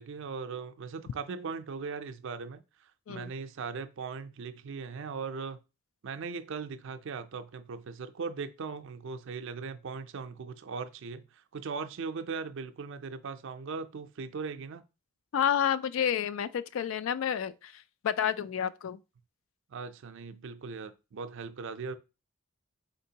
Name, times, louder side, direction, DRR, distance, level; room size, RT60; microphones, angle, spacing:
voice 1, 0.0-5.6 6.0-14.8 19.7-21.9, right 5 dB, 65° right, 0.4 m, -39 dB
voice 2, 15.3-19.0, left 9 dB, 70° left, 0.3 m, -30 dB
4.3 x 3.9 x 2.8 m
head